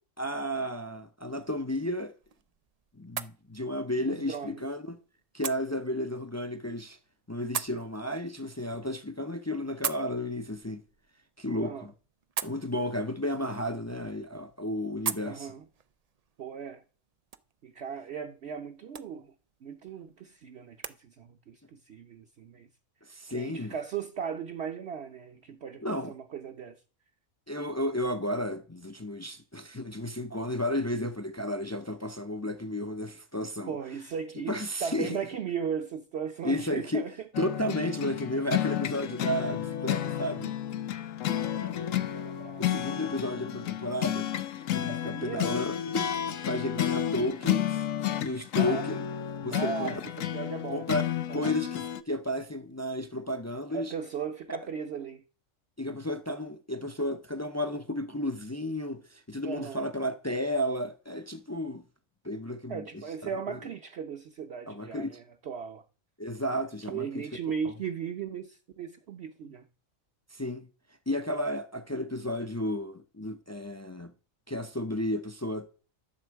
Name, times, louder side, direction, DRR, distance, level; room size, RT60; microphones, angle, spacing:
voice 1, 0.2-2.1 3.0-5.0 5.3-7.0 7.3-10.8 11.4-11.9 12.4-15.5 23.1-23.7 25.8-26.1 27.5-33.7 34.5-35.2 36.4-37.0 37.4-40.5 42.6-44.3 44.5-46.1 46.5-47.8 48.2-49.0 49.4-49.9 50.7-51.0 51.3-53.9 55.8-61.8 62.2-63.0 63.5-63.6 64.7-65.2 66.2-67.3 70.3-70.7 71.1-74.1 74.5-75.7, left 1 dB, 25° left, 0.4 m, -33 dB
sound 1, 1.5-21.0, right 7 dB, 70° right, 0.3 m, -43 dB
voice 2, 4.1-4.6 11.6-11.9 15.2-15.6 16.4-16.8 17.6-19.3 19.6-22.7 23.3-26.8 33.7-37.1 37.8-37.9 41.6-42.7 44.9-45.6 46.9-47.0 48.6-48.9 49.5-50.9 51.3-51.5 53.7-55.2 59.4-59.8 62.7-65.8 66.9-69.6, right 7 dB, 55° right, 1.0 m, -37 dB
sound 2, 37.3-52.0, left 11 dB, 70° left, 1.1 m, -31 dB
13.0 x 7.1 x 4.6 m
omnidirectional pair, 1.4 m